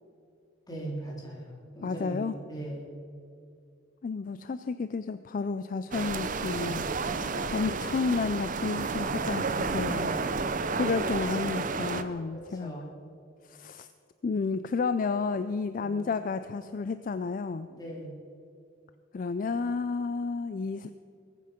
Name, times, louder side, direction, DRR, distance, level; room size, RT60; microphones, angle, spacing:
voice 1, 0.7-3.0 6.6-7.5 9.5-10.3 12.3-13.1 15.7-16.1 17.7-18.2, right 1 dB, 20° left, -3 dB, 3.3 m, -41 dB
voice 2, 1.8-2.3 4.0-6.8 7.5-10.1 10.7-12.7 13.4-13.9 14.2-17.7 19.1-20.9, left 4 dB, 45° left, 12 dB, 0.4 m, -31 dB
sound 1, 5.9-12.0, right 4 dB, 45° right, 0.7 m, -31 dB
21.0 x 9.3 x 5.1 m, 2.5 s
head